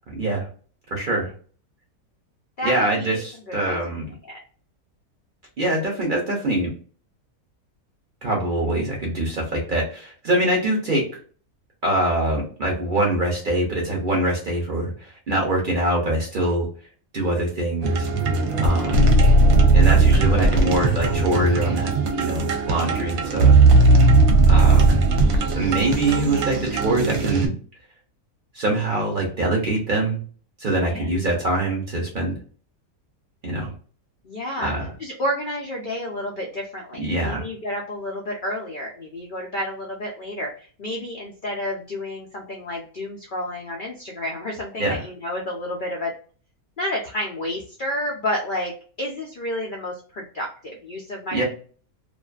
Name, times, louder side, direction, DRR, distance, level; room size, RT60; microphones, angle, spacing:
voice 1, 0.2-0.5 0.9-1.3 2.6-4.1 5.6-6.7 8.2-11.0 11.8-16.7 17.1-18.1 18.6-19.1 19.7-21.9 22.2-23.6 24.5-25.0 25.5-27.5 28.5-30.2 30.6-32.4 33.4-33.7 34.6-34.9 37.0-37.5 44.8-45.0 51.3-51.4, right 1 dB, 50° right, -2 dB, 0.7 m, -24 dB
voice 2, 2.6-3.2 3.5-3.8 4.2-4.4 18.3-18.8 24.0-24.8 30.7-31.4 34.2-34.7 35.0-46.1 46.8-51.4, left 1 dB, 80° left, -1 dB, 0.4 m, -31 dB
sound 1, 17.8-27.5, right 3 dB, 75° right, 1.0 m, -17 dB
2.5 x 2.4 x 2.2 m, 0.42 s
omnidirectional pair, 1.6 m